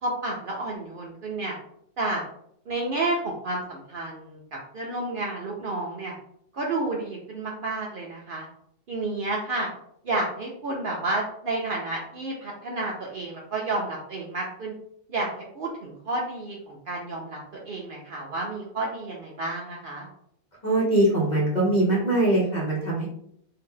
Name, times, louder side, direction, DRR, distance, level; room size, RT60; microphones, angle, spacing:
voice 1, 0.0-1.6 2.0-2.2 2.7-6.1 6.5-8.5 8.9-9.7 10.0-14.7 15.1-20.1, right 2 dB, 55° right, -1 dB, 0.6 m, -31 dB
voice 2, 20.6-23.1, right 1 dB, 40° left, -3 dB, 1.1 m, -22 dB
2.7 x 2.7 x 3.7 m, 0.69 s
omnidirectional pair, 1.3 m